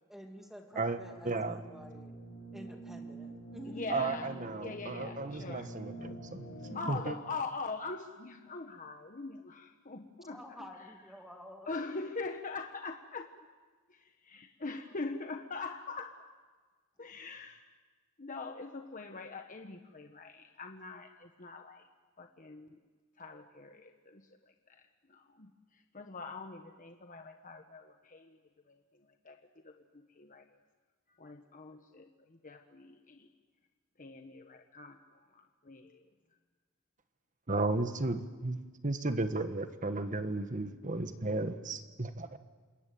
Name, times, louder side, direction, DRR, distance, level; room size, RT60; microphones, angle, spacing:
voice 1, 0.1-2.2 2.5-4.2 10.3-11.7, equal, ahead, 3 dB, 2.6 m, -49 dB
sound 1, 0.7-6.8, right 2 dB, 70° left, 6.0 m, -47 dB
voice 2, 1.2-1.6 3.9-7.1 37.5-38.6 38.8-42.4, right 2 dB, 40° right, 9 dB, 1.4 m, -34 dB
voice 3, 3.7-5.7 6.7-10.9 11.7-13.3 13.9-16.3 17.0-17.6 18.2-21.9 22.2-22.8 23.2-28.4 28.6-30.6 31.1-33.3 34.0-36.0, left 3 dB, 40° left, 5 dB, 1.2 m, -43 dB
28.0 x 21.5 x 9.3 m, 1.4 s
head